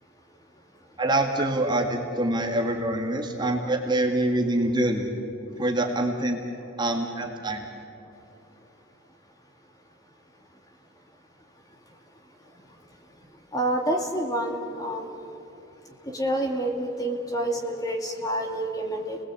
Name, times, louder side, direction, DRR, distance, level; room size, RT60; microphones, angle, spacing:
voice 1, 1.0-5.1 5.6-6.4 6.8-7.6, right 1 dB, 20° right, 2 dB, 2.0 m, -25 dB
voice 2, 13.5-15.1 16.1-19.2, right 1 dB, 20° left, 2 dB, 2.4 m, -28 dB
29.5 x 20.5 x 8.4 m, 2.9 s
head